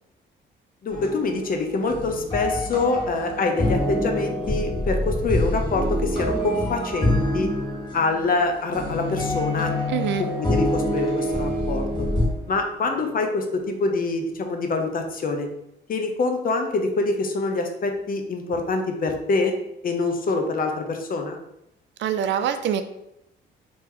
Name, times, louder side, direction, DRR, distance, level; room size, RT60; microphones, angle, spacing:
voice 1, 0.8-7.5 7.9-9.8 10.2-12.1 12.5-15.5 15.9-19.5 19.8-21.4, left 3 dB, 45° left, 4 dB, 0.7 m, -25 dB
sound 1, 0.9-12.3, equal, 20° left, 1.3 m, -26 dB
Bowed string instrument, 8.7-14.0, left 7 dB, 20° right, 1.2 m, -34 dB
voice 2, 9.9-10.3 22.0-22.8, right 9 dB, 70° right, 9 dB, 0.4 m, -24 dB
2.9 x 2.8 x 3.7 m, 0.82 s
cardioid pair, 90°, 20 cm